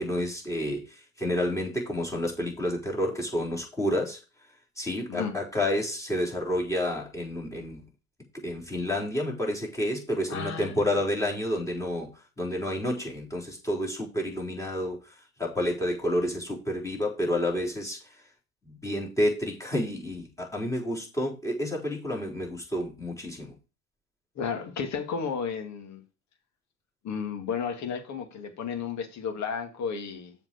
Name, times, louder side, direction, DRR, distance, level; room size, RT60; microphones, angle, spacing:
voice 1, 0.0-4.2 4.8-7.8 8.3-18.2 18.6-23.6, left 1 dB, 10° left, 4.1 m, -30 dB
voice 2, 10.3-10.9 24.4-26.0 27.0-30.3, left 6 dB, 45° left, 2.3 m, -33 dB
7.2 x 4.7 x 7.0 m
hypercardioid pair, 90°, 40 cm